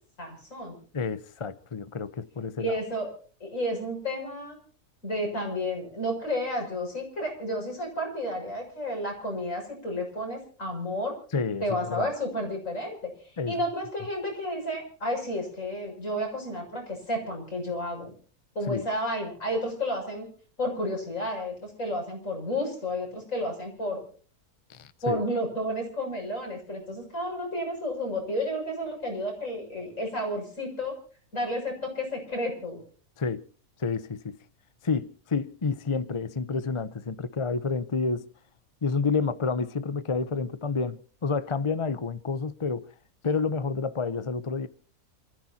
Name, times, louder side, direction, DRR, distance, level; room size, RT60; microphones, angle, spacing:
voice 1, 0.2-0.7 2.6-3.1 3.4-4.6 5.0-11.1 11.6-13.1 13.5-18.1 18.6-20.3 20.6-24.0 25.0-31.0 31.3-32.8, equal, 60° left, 7.1 m, -31 dB
voice 2, 0.9-2.7 11.3-12.1 13.4-13.6 18.7-18.9 24.7-25.2 33.2-33.4 33.8-34.4 34.8-38.3 38.8-42.8 43.2-44.7, left 4 dB, 35° left, 0.5 m, -29 dB
28.0 x 15.0 x 2.8 m
omnidirectional pair, 1.6 m